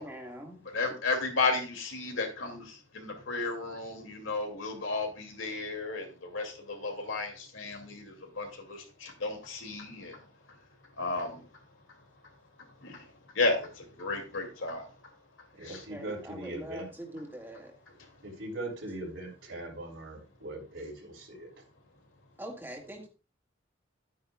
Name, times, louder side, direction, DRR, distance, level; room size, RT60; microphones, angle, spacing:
voice 1, 0.0-0.6 15.9-16.8 17.1-17.7 22.4-23.1, equal, 10° right, 1.8 m, -43 dB
voice 2, 0.6-10.2 11.0-11.4 12.8-13.0 13.3-14.8, left 3 dB, 80° left, 2.5 m, -33 dB
voice 3, 15.5-16.9 18.2-21.7, right 2 dB, 75° right, 3.4 m, -40 dB
11.5 x 9.1 x 2.3 m
head